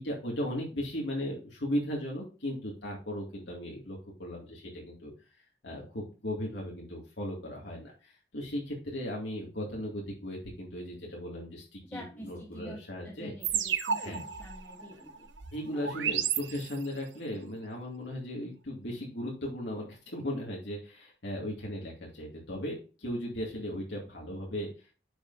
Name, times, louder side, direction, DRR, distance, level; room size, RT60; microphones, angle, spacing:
voice 1, 0.0-5.1 5.6-13.3 14.0-14.2 15.5-24.9, equal, 70° left, -2 dB, 2.1 m, -37 dB
voice 2, 11.8-15.3 15.7-16.2, equal, 10° left, -2 dB, 1.1 m, -48 dB
sound 1, 13.4-17.1, right 8 dB, 80° right, 0.9 m, -33 dB
10.0 x 5.1 x 2.6 m, 0.35 s
head